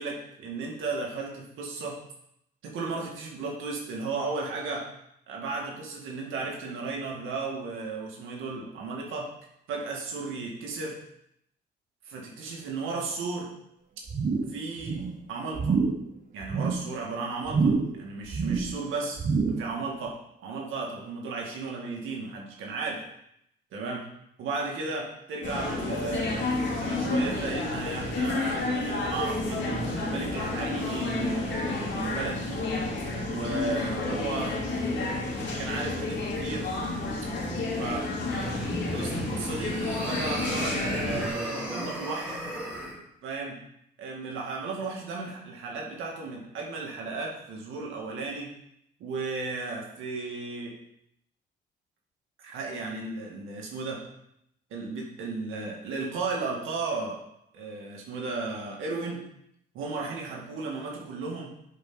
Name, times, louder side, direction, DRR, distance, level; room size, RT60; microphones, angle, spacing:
voice 1, 0.0-2.0 2.6-4.9 5.3-9.3 9.7-11.0 12.1-13.5 14.5-15.0 15.3-15.8 16.3-19.2 19.6-20.1 20.4-23.0 23.7-24.0 24.4-32.6 33.3-34.5 35.6-36.7 37.8-38.1 38.9-39.8 40.0-42.4 43.2-43.6 44.0-48.5 49.0-50.7 52.4-54.0 54.7-57.2 57.5-59.2 59.7-61.5, right 3 dB, 85° right, -1 dB, 2.1 m, -34 dB
sound 1, 14.1-14.6 14.8-15.2 15.5-16.0 16.4-16.9 17.5-18.0 18.3-18.8 19.2-19.7 20.1-20.2, right 4 dB, 40° right, 1.1 m, -27 dB
sound 2, 25.4-41.3, left 2 dB, 70° left, 2.5 m, -30 dB
sound 3, 38.2-43.0, equal, 5° right, 3.1 m, -35 dB
10.5 x 5.1 x 4.0 m, 0.76 s
cardioid pair, 90°, 20 cm